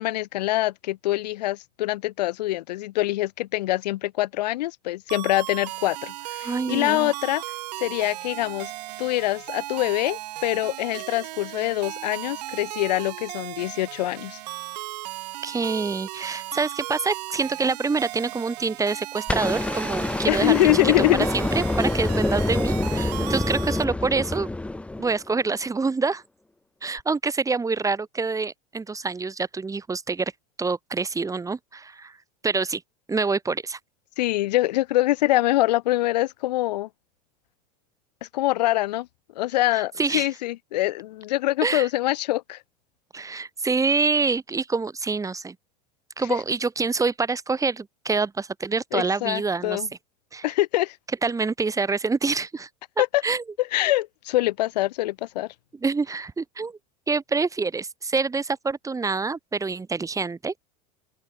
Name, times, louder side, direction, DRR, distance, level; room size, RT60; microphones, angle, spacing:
voice 1, 0.0-7.4 7.8-8.7 9.0-14.4 20.3-21.3 34.2-36.9 38.3-39.1 39.4-42.6 48.9-49.9 50.4-50.9 53.0-53.2 53.7-55.5, left 16 dB, 75° left, 2.7 m, -24 dB
sound 1, 5.1-23.8, right 18 dB, 70° right, 7.4 m, -36 dB
voice 2, 6.4-7.1 15.4-24.5 25.0-26.2 26.8-30.3 30.6-32.2 32.4-32.8 33.1-33.8 39.7-40.3 41.6-41.9 43.1-45.5 46.2-49.8 50.3-50.5 51.2-52.7 53.2-53.4 55.7-56.8 57.1-60.5, right 4 dB, 15° right, 2.9 m, -26 dB
sound 2, 19.3-25.5 27.0-27.1, left 2 dB, 5° left, 0.7 m, -26 dB
open air
hypercardioid pair, 100°, 21 cm